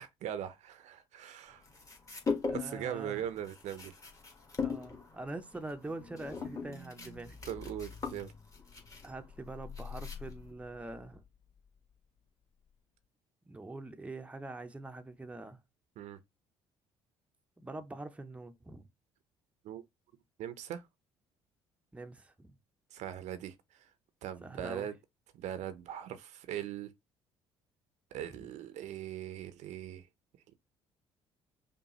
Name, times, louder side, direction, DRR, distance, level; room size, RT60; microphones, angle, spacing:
voice 1, 0.0-1.6 2.5-3.9 7.5-8.3 16.0-16.2 19.6-19.8 20.4-20.8 22.9-23.9 24.2-24.9 25.3-26.9 28.1-30.1, right 10 dB, 60° right, 0.6 m, -40 dB
sound 1, 1.6-2.9 3.2-10.5, left 4 dB, 25° left, 1.5 m, -39 dB
voice 2, 2.5-3.2 4.6-7.4 9.0-11.2 13.5-15.6 17.6-18.9 21.9-22.5 24.4-24.9 28.3-28.5, right 2 dB, 10° right, 0.6 m, -44 dB
sound 2, 5.9-11.6 11.9-12.0, left 6 dB, 45° left, 1.8 m, -50 dB
5.3 x 2.2 x 3.0 m
hypercardioid pair, 55°, 14 cm